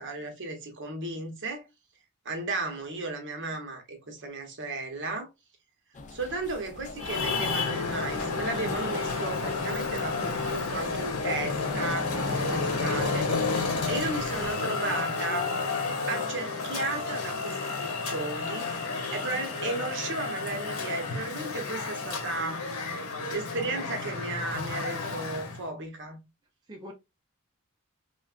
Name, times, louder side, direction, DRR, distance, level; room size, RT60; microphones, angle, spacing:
voice 1, 0.0-1.6 2.2-5.3 6.1-13.3 13.6-15.5 16.1-18.7 19.1-22.7 23.3-26.2, right 3 dB, 55° right, 1.0 m, -34 dB
sound 1, 5.9-14.5, left 3 dB, 35° left, 0.4 m, -43 dB
Traffic noise roadway noise, 7.0-25.6, left 4 dB, 90° left, 0.9 m, -31 dB
voice 2, 12.0-12.7 19.2-19.4 26.7-26.9, right 2 dB, 20° right, 0.5 m, -43 dB
3.3 x 2.4 x 2.3 m
head